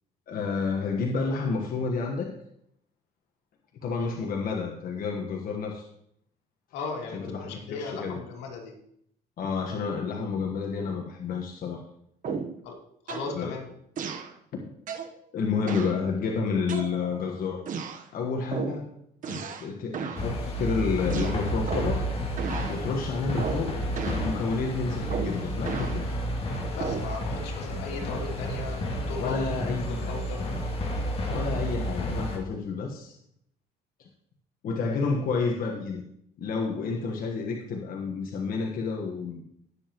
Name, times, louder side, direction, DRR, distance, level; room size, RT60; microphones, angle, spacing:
voice 1, 0.3-2.3 3.8-5.9 7.1-8.2 9.4-11.8 12.3-12.5 13.3-13.6 14.5-14.6 15.3-17.6 18.1-18.9 19.3-22.0 22.7-26.1 29.2-30.2 31.3-33.1 34.0-34.1 34.6-36.0 36.4-39.4, left 4 dB, 60° left, 1 dB, 1.4 m, -30 dB
voice 2, 6.7-8.7 12.6-12.8 13.0-13.7 26.7-28.8 29.1-29.5 29.9-30.5, left 4 dB, 90° left, 0 dB, 2.6 m, -37 dB
sound 1, 12.2-12.6 13.1-13.3 14.0-14.3 14.9-15.1 15.7-16.0 16.7-17.2 17.7-18.0 18.5-18.8 19.2-19.7 19.9-20.3 21.1-22.0 22.4-22.8 23.4-23.7 24.0-24.3 25.1-26.0 26.8-27.1, right 6 dB, 50° right, 1.1 m, -34 dB
sound 2, 20.2-32.4, equal, 35° left, 2.4 m, -31 dB
18.0 x 7.1 x 3.0 m, 0.71 s
cardioid pair, 110°, 17 cm